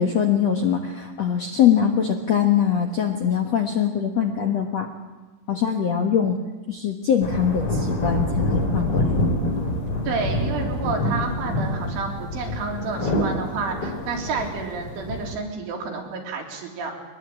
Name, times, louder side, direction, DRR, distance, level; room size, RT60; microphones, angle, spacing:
voice 1, 0.0-4.9 5.5-6.4 6.7-9.1, left 8 dB, 70° left, 3 dB, 1.6 m, -22 dB
sound 1, 7.2-15.3, left 1 dB, 30° left, 4.4 m, -26 dB
voice 2, 10.1-16.9, right 4 dB, 85° right, 1 dB, 6.2 m, -30 dB
23.5 x 20.5 x 8.8 m, 1.2 s
omnidirectional pair, 5.3 m